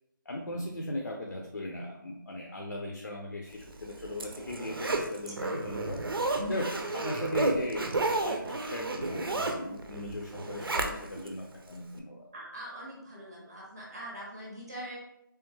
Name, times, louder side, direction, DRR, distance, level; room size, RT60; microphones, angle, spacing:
voice 1, 0.3-6.0 6.5-12.3, left 1 dB, 60° left, 1 dB, 0.6 m, -38 dB
Zipper (clothing), 3.7-11.3 11.7-11.8, right 2 dB, 85° right, 0.7 m, -32 dB
voice 2, 12.3-15.0, equal, 10° right, -13 dB, 0.4 m, -41 dB
3.4 x 3.4 x 3.2 m, 0.83 s
figure-of-eight pair, 180°, 12 cm